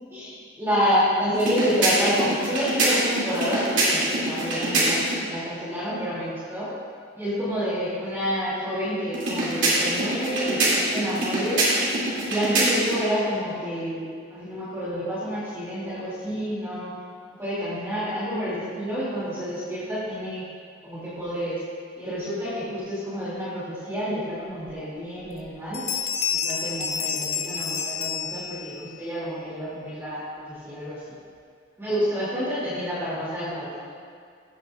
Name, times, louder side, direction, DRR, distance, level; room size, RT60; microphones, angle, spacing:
voice 1, 0.1-6.7 7.1-11.6 12.2-16.9 17.3-20.4 20.8-21.6 22.0-25.9 26.4-31.0 31.8-33.8, equal, 10° right, -10 dB, 2.6 m, -28 dB
High Pitch Rhythme, 1.3-5.2 9.1-13.0, right 1 dB, 70° right, 2.5 m, -24 dB
Bell, 24.7-24.8 25.2-25.5 25.7-28.9, left 7 dB, 30° left, 0.5 m, -29 dB
14.5 x 8.9 x 2.4 m, 2.2 s
head